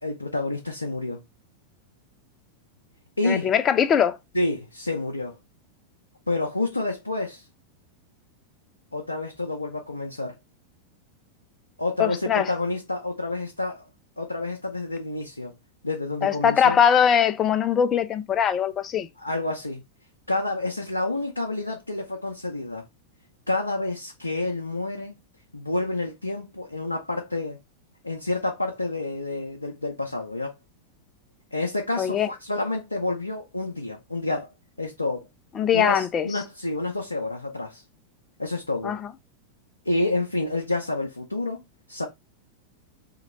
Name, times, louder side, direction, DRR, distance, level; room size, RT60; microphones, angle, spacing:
voice 1, 0.0-1.2 3.2-3.5 4.3-5.4 6.3-7.5 8.9-10.4 11.8-13.8 14.2-15.5 15.8-16.8 19.2-19.8 20.3-22.8 23.5-25.2 25.5-27.6 28.0-30.5 31.5-34.5 34.8-35.2 35.7-37.8 38.4-38.9 39.9-41.6 41.9-42.1, left 2 dB, 85° left, 0.6 m, -29 dB
voice 2, 3.2-4.2 12.0-12.5 16.2-19.1 32.0-32.3 35.5-36.4 38.8-39.1, left 8 dB, 25° left, 0.4 m, -21 dB
2.9 x 2.8 x 3.9 m
figure-of-eight pair, 90°, 0 cm